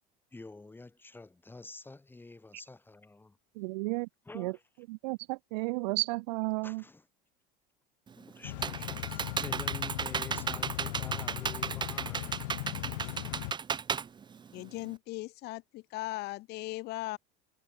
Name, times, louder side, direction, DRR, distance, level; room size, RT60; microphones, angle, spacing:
voice 1, 0.3-3.4 4.3-4.6 6.6-7.1 8.1-12.8, left 2 dB, 10° left, 7.7 m, -49 dB
voice 2, 3.6-4.1 4.3-4.6 4.9-6.8, right 25 dB, 85° right, 0.6 m, -33 dB
Computer keyboard, 8.1-14.9, right 6 dB, 20° right, 1.5 m, -35 dB
sound 1, 8.4-13.5, left 23 dB, 90° left, 0.9 m, -39 dB
voice 3, 14.5-17.2, left 19 dB, 55° left, 1.2 m, -38 dB
supercardioid pair, 135°, 21 cm